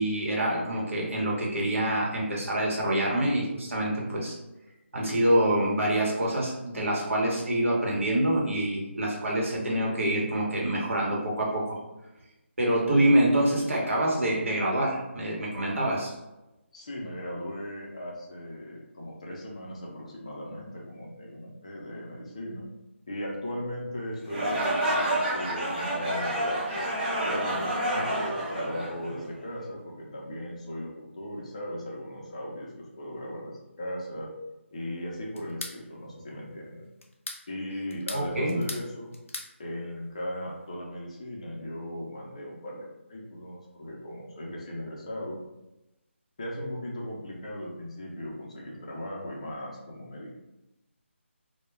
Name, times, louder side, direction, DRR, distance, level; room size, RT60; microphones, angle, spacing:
voice 1, 0.0-4.4 4.9-11.8 12.6-16.1 38.1-38.6, right 1 dB, 75° right, -3 dB, 1.0 m, -26 dB
voice 2, 16.7-22.7 23.1-34.3 34.7-36.9 37.5-39.1 39.6-45.4 46.4-50.3, equal, 30° left, -3 dB, 0.4 m, -38 dB
sound 1, 24.2-29.5, right 1 dB, 40° right, 1.0 m, -29 dB
sound 2, 35.4-35.8 37.0-37.4 37.9-38.9 39.1-39.5, left 2 dB, 85° left, 0.6 m, -38 dB
2.1 x 2.1 x 3.1 m, 0.97 s
figure-of-eight pair, 170°, 7 cm